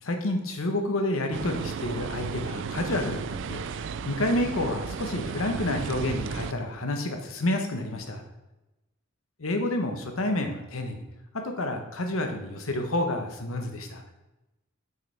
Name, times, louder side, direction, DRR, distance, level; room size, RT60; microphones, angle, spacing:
voice 1, 0.0-8.2 9.4-11.0 11.4-14.0, left 1 dB, 90° left, 4 dB, 1.1 m, -29 dB
sound 1, 1.3-6.5, right 6 dB, 60° right, 0.3 m, -34 dB
6.7 x 6.6 x 3.4 m, 0.99 s
head